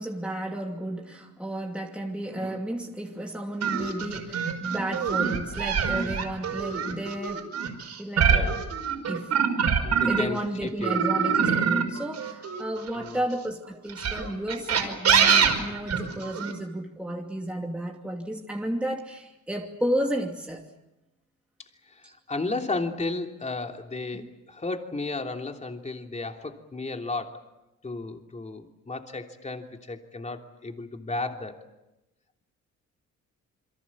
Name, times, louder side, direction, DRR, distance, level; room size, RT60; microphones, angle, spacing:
voice 1, 0.0-7.5 8.0-8.6 9.1-9.3 10.0-20.7 22.0-22.1 24.1-24.3, right 1 dB, 5° right, 2.7 m, -32 dB
sound 1, 3.6-10.4 10.8-13.2 13.9-16.5, right 6 dB, 60° right, 5.3 m, -24 dB
voice 2, 9.8-10.4 10.8-11.0 12.9-13.2 21.9-27.4 27.8-31.5, left 3 dB, 25° left, 3.1 m, -34 dB
28.5 x 23.5 x 7.4 m
cardioid pair, 90°, 30 cm